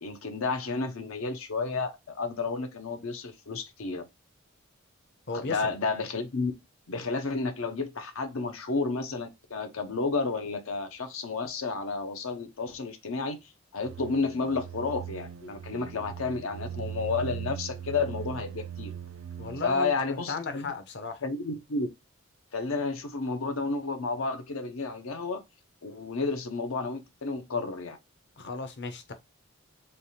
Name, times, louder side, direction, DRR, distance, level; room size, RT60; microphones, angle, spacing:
voice 1, 0.0-4.0 5.3-6.5 6.9-13.4 13.7-18.9 19.6-20.6 21.2-21.9 22.5-25.4 25.8-28.0, left 4 dB, 85° left, 0.8 m, -31 dB
voice 2, 5.3-5.7 19.4-21.2 28.4-29.1, left 4 dB, 55° left, 0.7 m, -35 dB
sound 1, 13.8-19.8, right 9 dB, 70° right, 0.3 m, -40 dB
3.4 x 2.3 x 4.1 m
head